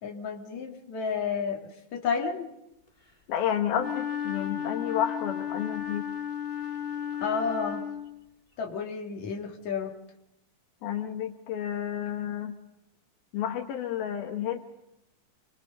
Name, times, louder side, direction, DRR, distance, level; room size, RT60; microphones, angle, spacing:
voice 1, 0.0-1.6 1.9-2.5 7.2-7.8 8.6-9.9, left 5 dB, 50° left, 0 dB, 3.7 m, -31 dB
voice 2, 3.3-6.1 10.8-12.5 13.3-14.6, left 10 dB, 85° left, 4 dB, 3.3 m, -31 dB
Wind instrument woodwind instrument, 3.7-8.3, left 9 dB, 15° left, 1.8 m, -34 dB
29.0 x 22.5 x 5.5 m, 0.88 s
omnidirectional pair, 4.2 m